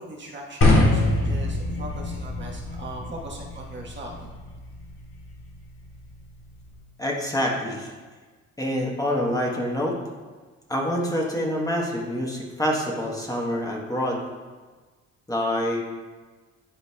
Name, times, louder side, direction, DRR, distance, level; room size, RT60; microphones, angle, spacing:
voice 1, 0.0-4.3, right 1 dB, 40° right, -2 dB, 1.2 m, -40 dB
sound 1, 0.6-6.7, left 2 dB, 45° left, 1.5 m, -26 dB
voice 2, 7.0-7.9 8.6-10.0 10.7-14.2 15.3-15.8, equal, 10° left, -2 dB, 1.0 m, -26 dB
10.5 x 4.0 x 2.2 m, 1.4 s
cardioid pair, 90°, 30 cm